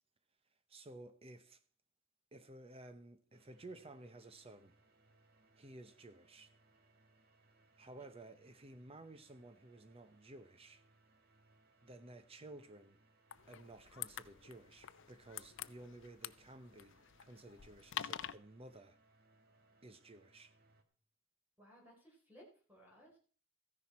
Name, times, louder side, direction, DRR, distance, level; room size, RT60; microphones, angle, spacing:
voice 1, 0.7-1.6 2.3-4.7 5.6-6.5 7.8-10.8 11.8-13.0 13.5-19.0 19.8-20.6, right 2 dB, 30° right, 0.8 m, -55 dB
sound 1, 3.3-20.8, right 2 dB, 50° right, 1.5 m, -71 dB
sound 2, 13.3-18.3, left 11 dB, 65° left, 0.5 m, -47 dB
voice 2, 21.6-23.2, equal, 10° right, 3.9 m, -61 dB
14.5 x 10.5 x 4.2 m
head